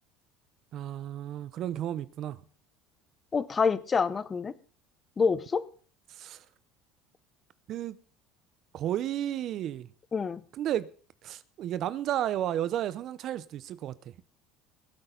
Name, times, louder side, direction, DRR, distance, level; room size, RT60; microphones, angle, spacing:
voice 1, 0.7-2.4 6.1-6.4 7.7-8.0 8.7-9.9 10.6-10.9 11.2-13.9, right 11 dB, 55° right, 0.7 m, -32 dB
voice 2, 3.3-4.5 5.2-5.6 10.1-10.4, left 5 dB, 25° left, 0.8 m, -27 dB
20.5 x 8.1 x 3.9 m
supercardioid pair, 110°, 0 cm